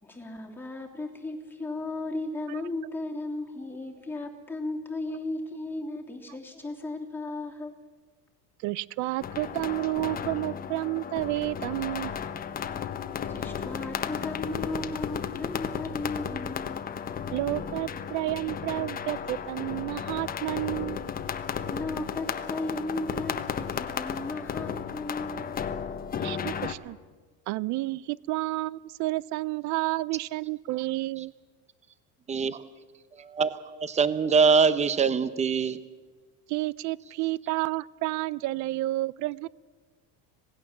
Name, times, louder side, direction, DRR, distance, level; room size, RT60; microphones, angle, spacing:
voice 1, 0.0-7.8 13.0-16.8 21.4-25.5, left 2 dB, 5° left, 0 dB, 2.9 m, -35 dB
voice 2, 8.6-12.1 17.3-21.0 26.2-27.0 27.5-31.3 36.5-39.5, right 19 dB, 50° right, 22 dB, 0.6 m, -30 dB
sound 1, 9.2-26.7, left 7 dB, 25° left, 1.1 m, -34 dB
voice 3, 33.3-35.8, right 5 dB, 20° right, 14 dB, 0.9 m, -23 dB
26.5 x 18.5 x 7.3 m, 1.4 s
cardioid pair, 155°, 36 cm